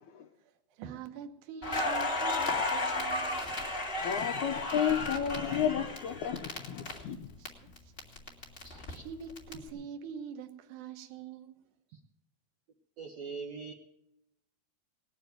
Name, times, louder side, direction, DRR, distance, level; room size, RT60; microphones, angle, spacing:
voice 1, 0.7-3.4 7.4-7.5 7.8-7.9 9.0-11.6, right 6 dB, 65° right, 2.2 m, -44 dB
Crackle, 1.6-7.5 7.8-9.5, left 2 dB, 35° left, 0.8 m, -33 dB
voice 2, 4.0-7.3, left 9 dB, 80° left, 1.7 m, -32 dB
voice 3, 8.6-9.0 13.0-13.7, right 5 dB, 90° right, 1.5 m, -42 dB
19.0 x 7.2 x 9.2 m
omnidirectional pair, 4.5 m